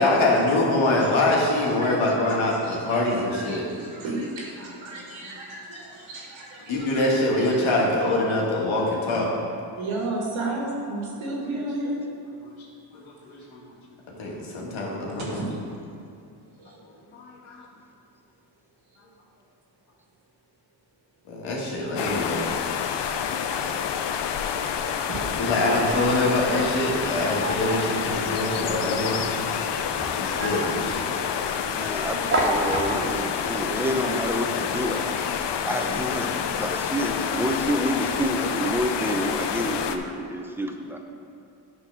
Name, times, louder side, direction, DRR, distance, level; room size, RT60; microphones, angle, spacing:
voice 1, 0.0-3.6 6.7-9.3 12.6-13.6 14.2-15.4 16.8-17.6 21.3-22.5 25.4-29.3 30.0-31.2, left 2 dB, 85° left, -3 dB, 1.8 m, -24 dB
voice 2, 0.8-1.1 1.6-7.7 9.8-12.0 14.9-15.5 16.6-16.8 21.5-21.7 23.5-23.7 24.2-24.7 35.9-36.0, right 2 dB, 75° right, -3 dB, 2.0 m, -34 dB
sound 1, 22.0-40.0, left 8 dB, 60° left, 0.6 m, -28 dB
sound 2, 24.9-33.3, right 1 dB, 25° right, 1.6 m, -33 dB
voice 3, 31.6-35.3 35.6-41.0, equal, 5° right, 3 dB, 0.8 m, -28 dB
9.7 x 3.8 x 6.1 m, 2.5 s
cardioid pair, 75°, 47 cm